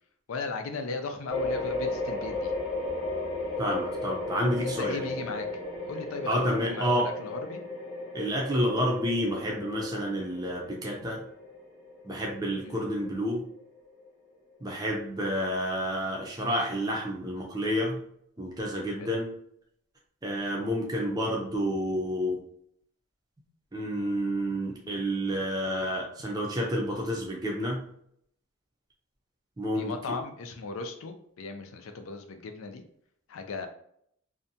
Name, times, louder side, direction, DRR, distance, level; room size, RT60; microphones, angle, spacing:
voice 1, 0.3-2.5 4.6-5.6 5.9-7.6 12.6-12.8 19.0-19.1 29.7-32.8 33.3-33.7, left 3 dB, 75° left, 6 dB, 0.4 m, -37 dB
sound 1, 1.3-14.1, left 2 dB, 30° left, 0.8 m, -35 dB
voice 2, 3.6-5.1 6.3-7.1 8.1-11.2 12.0-13.4 14.6-18.0 18.4-19.3 20.2-22.4 23.7-27.9 29.6-29.9, equal, 20° right, -2 dB, 0.5 m, -29 dB
2.6 x 2.2 x 2.7 m, 0.68 s
head